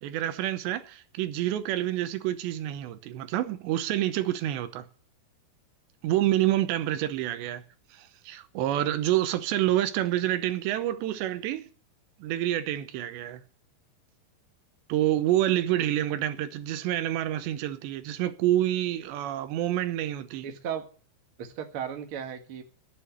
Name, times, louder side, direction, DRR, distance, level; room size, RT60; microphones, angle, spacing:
voice 1, 0.0-4.9 6.0-7.6 7.9-11.7 12.2-13.4 14.9-20.5, right 13 dB, 90° right, 3.1 m, -28 dB
voice 2, 20.4-20.8 21.4-22.6, right 8 dB, 55° right, 1.6 m, -35 dB
10.5 x 8.3 x 9.8 m
omnidirectional pair, 5.0 m